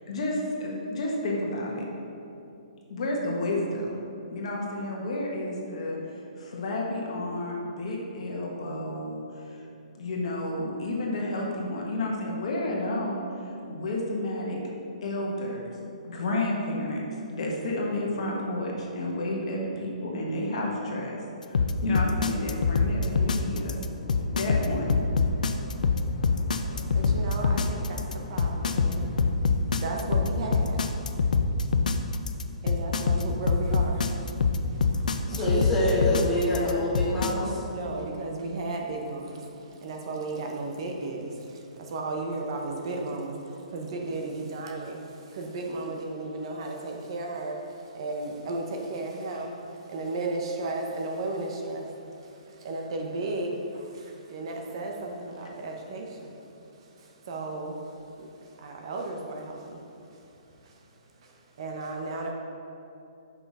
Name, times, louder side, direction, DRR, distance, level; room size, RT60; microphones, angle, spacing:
voice 1, 0.1-1.8 2.9-4.0 4.3-6.0 6.4-9.2 10.0-13.2 13.7-14.6 15.0-15.7 16.0-17.0 17.3-21.2 21.5-23.8 24.1-24.9, left 1 dB, 50° left, -2 dB, 1.4 m, -31 dB
sound 1, 21.5-37.3, left 5 dB, 85° left, 0.5 m, -24 dB
sound 2, 23.0-29.3, left 2 dB, 65° left, 0.9 m, -44 dB
voice 2, 26.7-31.2 32.1-32.3 32.6-35.6 37.7-60.3 60.6-60.8 61.2-62.3, right 2 dB, 40° right, 1 dB, 0.7 m, -35 dB
voice 3, 35.2-37.6, left 1 dB, 5° left, -8 dB, 1.3 m, -26 dB
6.9 x 5.6 x 4.2 m, 2.7 s
hypercardioid pair, 170°, 4 cm